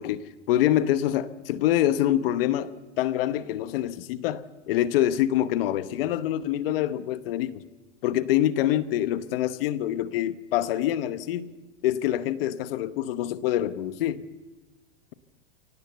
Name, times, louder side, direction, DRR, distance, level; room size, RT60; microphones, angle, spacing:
voice 1, 0.0-2.7 3.0-7.6 8.0-11.5 11.8-14.2, left 12 dB, 50° left, 1.0 m, -25 dB
24.5 x 17.5 x 8.0 m
supercardioid pair, 155°, 37 cm